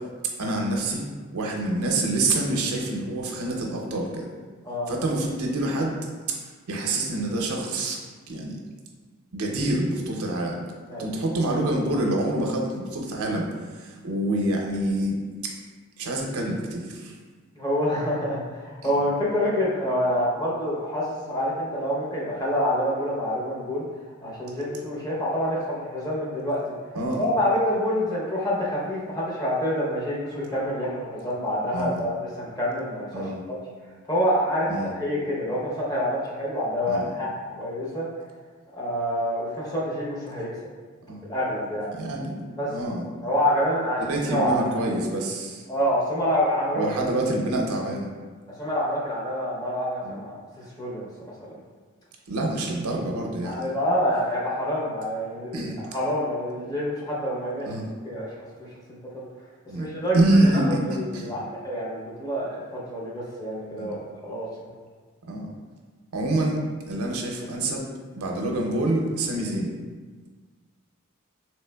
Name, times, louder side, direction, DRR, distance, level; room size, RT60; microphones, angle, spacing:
voice 1, 0.4-1.1 1.3-4.3 4.9-6.0 6.3-6.4 6.7-8.0 8.3-8.6 9.3-10.6 11.0-15.2 15.4-15.5 16.0-17.1 26.9-27.2 31.7-32.0 33.1-33.5 34.7-34.9 36.9-37.1 41.1-41.2 41.9-42.4 42.7-43.0 44.1-45.6 46.7-48.1 50.0-50.2 52.3-53.7 55.5-55.8 57.6-57.9 59.7-59.9 60.1-61.3 63.8-63.9 65.3-65.5 66.1-66.6 66.9-67.8 68.2-69.7, right 1 dB, 80° right, 0 dB, 0.5 m, -26 dB
voice 2, 17.5-23.9 24.2-26.7 27.2-33.6 34.1-38.1 38.7-40.5 41.2-41.9 42.6-42.7 43.2-44.0 44.3-44.7 45.7-46.9 48.6-50.4 50.8-51.1 51.4-51.5 53.4-57.7 58.0-58.3 58.6-59.3 59.8-60.2 60.9-64.8, equal, 20° left, -6 dB, 0.6 m, -27 dB
3.3 x 3.0 x 2.2 m, 1.4 s
head